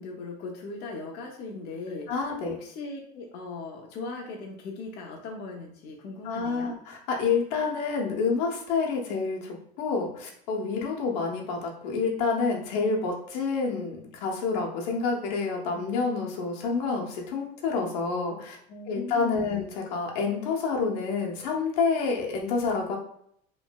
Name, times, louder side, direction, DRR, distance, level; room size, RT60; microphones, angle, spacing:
voice 1, 0.0-2.1 2.5-6.7 18.7-19.6, left 3 dB, 50° left, 0 dB, 0.6 m, -39 dB
voice 2, 2.1-2.5 6.2-18.6 18.9-23.0, left 4 dB, 80° left, -1 dB, 0.8 m, -28 dB
3.0 x 2.6 x 2.2 m, 0.68 s
supercardioid pair, 125°, 21 cm